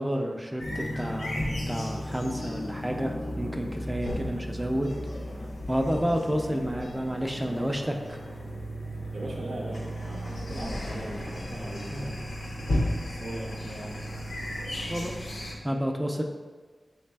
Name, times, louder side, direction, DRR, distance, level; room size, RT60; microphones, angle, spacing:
voice 1, 0.0-4.9 5.7-8.2 11.9-12.2 14.9-15.3 15.6-16.2, equal, 10° right, 2 dB, 0.3 m, -30 dB
sound 1, 0.6-15.5, equal, 90° left, 0.5 m, -34 dB
voice 2, 9.1-12.2 13.0-14.5 14.7-15.2, right 1 dB, 90° right, -2 dB, 0.6 m, -40 dB
4.0 x 3.2 x 2.2 m, 1.4 s
wide cardioid pair, 60°, 0 cm